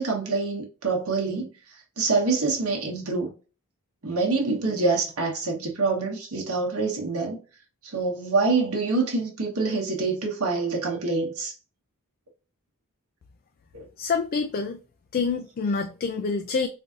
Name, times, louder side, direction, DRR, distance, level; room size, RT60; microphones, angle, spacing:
voice 1, 0.0-1.5 2.0-3.3 4.0-7.4 7.8-11.5 13.7-13.8, right 3 dB, 75° right, 1.1 m, -26 dB
voice 2, 14.0-14.8 15.1-16.7, left 4 dB, 40° left, 0.3 m, -27 dB
3.7 x 2.6 x 2.4 m
head